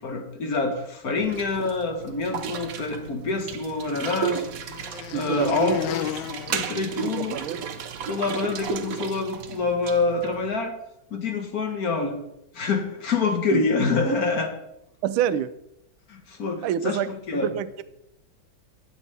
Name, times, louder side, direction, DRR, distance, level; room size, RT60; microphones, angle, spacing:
voice 1, 0.0-4.4 5.1-6.1 6.5-7.4 8.1-10.7 11.1-12.2 12.5-14.5 16.1-17.5, left 3 dB, 50° left, 4 dB, 1.5 m, -26 dB
sound 1, 1.2-10.5, right 8 dB, 60° right, 0.9 m, -34 dB
sound 2, 3.0-7.6, left 11 dB, 70° left, 1.2 m, -35 dB
voice 2, 5.1-5.8 7.0-7.6 13.5-13.7 15.0-15.5 16.6-17.1 17.3-17.8, right 10 dB, 90° right, 14 dB, 1.4 m, -27 dB
12.0 x 8.6 x 3.4 m, 0.83 s
omnidirectional pair, 2.2 m